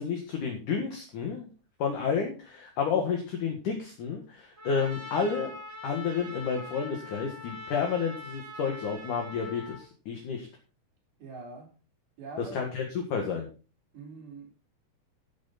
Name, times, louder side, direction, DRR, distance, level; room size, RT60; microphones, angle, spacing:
voice 1, 0.0-1.5 1.8-5.5 5.8-10.5 12.5-13.5, left 6 dB, 55° left, 2.9 m, -30 dB
Trumpet, 4.6-9.8, left 1 dB, 25° right, 2.0 m, -43 dB
voice 2, 11.2-11.7 12.2-12.7 13.9-14.5, right 3 dB, 65° right, 5.8 m, -43 dB
14.5 x 7.6 x 4.2 m
omnidirectional pair, 4.8 m